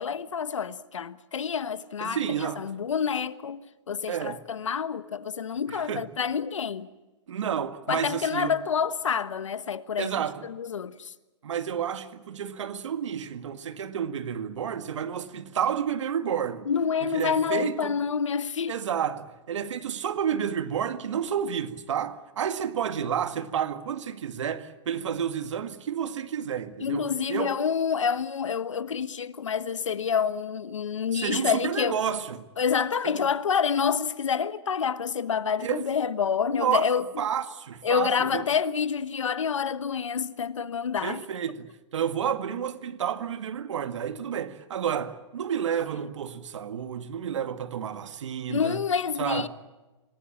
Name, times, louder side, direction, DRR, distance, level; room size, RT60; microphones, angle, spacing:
voice 1, 0.0-6.9 7.9-11.1 16.6-18.8 26.8-32.0 32.6-37.1 37.8-41.2 48.5-49.5, left 7 dB, 90° left, 1.3 m, -28 dB
voice 2, 2.0-2.6 4.1-4.4 5.7-6.0 7.3-8.5 10.0-10.5 11.4-16.7 17.0-18.0 18.7-27.5 31.1-32.4 33.0-33.2 35.6-35.9 36.6-36.9 37.2-38.4 41.0-48.8 49.2-49.5, right 8 dB, 80° right, 2.0 m, -30 dB
27.0 x 19.0 x 8.6 m
hypercardioid pair, 120°, 15 cm